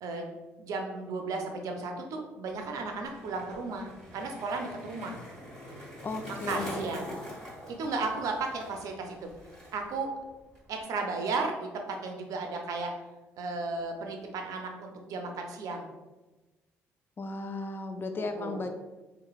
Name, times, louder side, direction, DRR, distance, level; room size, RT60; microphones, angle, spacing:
voice 1, 0.6-5.2 6.3-7.1 7.7-9.3 9.7-10.1 10.7-12.9 13.4-15.9 18.3-18.7, right 3 dB, 65° right, 3 dB, 0.4 m, -34 dB
Skateboard, 2.5-10.0 10.3-10.8, equal, 10° left, 1.4 m, -44 dB
voice 2, 6.0-6.9 17.2-18.7, left 3 dB, 35° left, 6 dB, 0.3 m, -35 dB
2.9 x 2.0 x 2.3 m, 1.1 s
hypercardioid pair, 55°, 7 cm